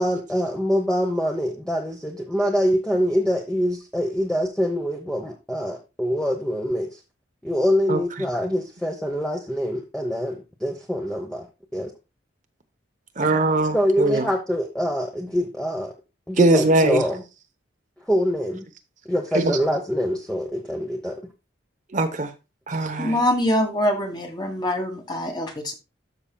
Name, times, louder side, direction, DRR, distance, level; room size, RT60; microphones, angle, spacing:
voice 1, 0.0-7.0 7.4-11.5 11.7-11.9 13.7-15.9 16.3-17.2 18.1-18.7 19.1-21.2, equal, 5° left, 0.9 m, -24 dB
voice 2, 13.2-14.2 16.4-17.0 19.3-19.6 21.9-22.3 22.7-23.2, right 2 dB, 40° right, 0.9 m, -20 dB
voice 3, 23.0-25.8, left 1 dB, 20° left, 1.6 m, -24 dB
13.0 x 5.8 x 2.3 m
head